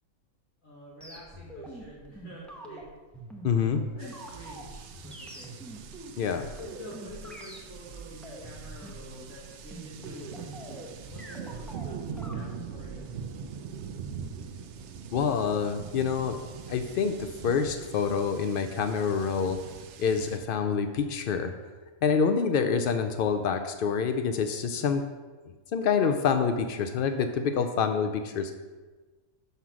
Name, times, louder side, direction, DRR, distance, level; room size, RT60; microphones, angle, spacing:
voice 1, 0.6-2.8 3.6-5.5 6.5-13.2 24.7-24.9, equal, 70° left, -7 dB, 2.1 m, -48 dB
sound 1, 1.0-13.2, right 1 dB, ahead, 0.8 m, -44 dB
voice 2, 3.4-3.8 6.2-6.5 15.1-16.4 16.7-19.6 20.0-21.5 22.0-25.0 25.7-28.5, left 6 dB, 90° left, 7 dB, 0.4 m, -27 dB
sound 2, 4.0-20.4, right 6 dB, 65° right, 0.8 m, -43 dB
5.8 x 5.7 x 6.1 m, 1.3 s
omnidirectional pair, 1.5 m